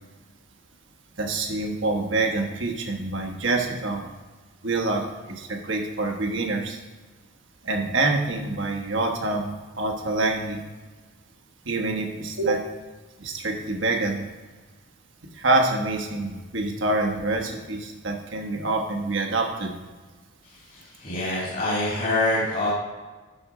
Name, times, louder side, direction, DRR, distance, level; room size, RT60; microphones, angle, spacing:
voice 1, 1.2-4.1 4.6-6.8 7.6-10.6 11.7-12.6 13.2-14.3 15.4-19.7, right 2 dB, 65° right, 2 dB, 1.3 m, -26 dB
voice 2, 20.7-22.7, left 2 dB, 45° left, -6 dB, 2.5 m, -25 dB
12.0 x 4.3 x 5.0 m, 1.3 s
head